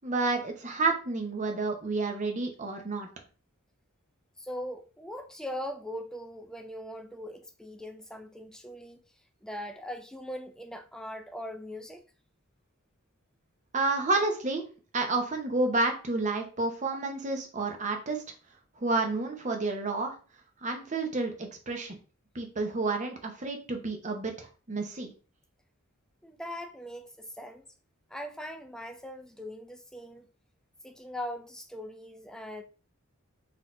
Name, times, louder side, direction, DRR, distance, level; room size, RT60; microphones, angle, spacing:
voice 1, 0.0-3.1 13.7-14.6 14.9-18.2 18.8-20.1 20.6-22.0 22.3-25.1, right 3 dB, 35° right, 0.8 m, -30 dB
voice 2, 4.4-9.0 9.4-12.0 26.2-27.7 28.1-30.3 30.8-32.6, equal, 5° left, 0.4 m, -40 dB
3.9 x 2.8 x 3.7 m
head